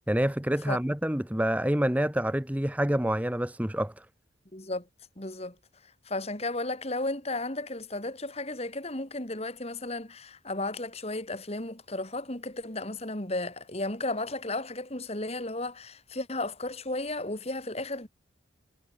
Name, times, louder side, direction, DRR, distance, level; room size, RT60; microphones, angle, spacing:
voice 1, 0.1-4.1, right 1 dB, 5° right, 0.8 m, -27 dB
voice 2, 4.5-4.8 5.2-5.5 6.1-18.1, left 2 dB, 30° left, 2.7 m, -34 dB
head